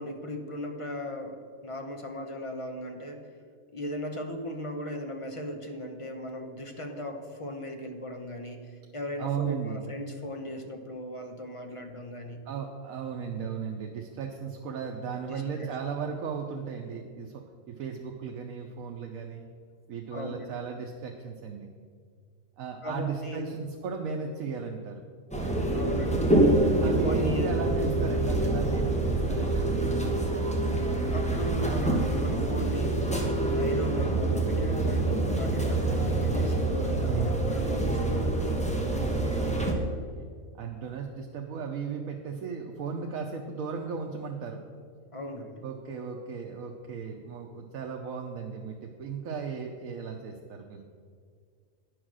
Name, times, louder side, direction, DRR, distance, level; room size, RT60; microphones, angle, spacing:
voice 1, 0.0-3.2 3.7-12.5 15.3-15.7 20.1-20.5 22.8-23.5 25.7-26.3 26.8-27.5 31.1-33.1 33.5-38.4 45.1-45.6, left 1 dB, 30° left, 4 dB, 0.8 m, -37 dB
voice 2, 9.2-9.9 12.5-19.5 19.9-21.7 22.6-25.0 26.8-30.0 37.0-38.1 39.3-40.3 40.6-44.6 45.6-50.8, right 6 dB, 90° right, 2 dB, 1.2 m, -36 dB
sound 1, 25.3-39.7, right 2 dB, 5° left, 1.0 m, -26 dB
10.0 x 6.3 x 6.2 m, 2.1 s
omnidirectional pair, 1.4 m